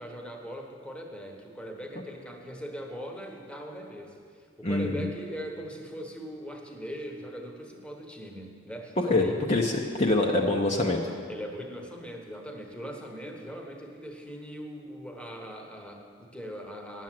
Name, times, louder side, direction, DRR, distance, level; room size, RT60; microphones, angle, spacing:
voice 1, 0.0-9.3 11.3-17.0, equal, 5° left, 2 dB, 1.0 m, -40 dB
voice 2, 4.6-5.0 9.0-11.1, left 2 dB, 35° left, 0 dB, 0.7 m, -25 dB
10.5 x 7.4 x 7.5 m, 2.2 s
head